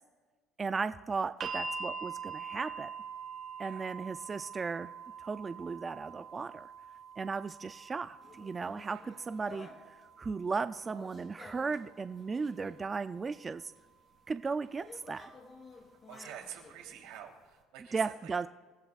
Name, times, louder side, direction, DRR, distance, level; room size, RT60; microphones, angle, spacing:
voice 1, 0.6-2.9 3.6-4.9 5.2-6.7 7.2-9.7 10.2-13.7 14.3-15.3 17.9-18.5, right 4 dB, 20° right, 11 dB, 0.3 m, -36 dB
sound 1, 1.4-13.5 14.6-14.7, right 5 dB, 35° right, 1.7 m, -45 dB
sound 2, 8.2-10.0 10.5-13.2 13.8-13.9 14.5-17.2, left 3 dB, 30° left, 3.0 m, -53 dB
voice 2, 16.1-18.3, right 10 dB, 90° right, 1 dB, 3.1 m, -48 dB
27.5 x 15.0 x 2.4 m, 1.4 s
cardioid pair, 145°, 0 cm